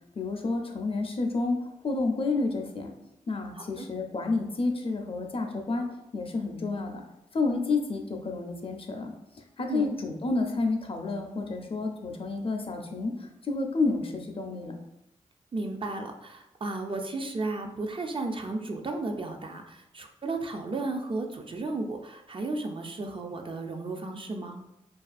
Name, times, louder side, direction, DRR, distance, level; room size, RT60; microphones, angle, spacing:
voice 1, 0.2-2.9 3.3-5.9 6.1-7.0 7.3-9.1 9.6-14.8, left 3 dB, 40° left, 3 dB, 0.4 m, -30 dB
voice 2, 3.6-3.9 9.7-10.0 15.5-24.6, right 2 dB, 40° right, 4 dB, 0.3 m, -34 dB
2.4 x 2.3 x 2.4 m, 0.86 s
cardioid pair, 45°, 14 cm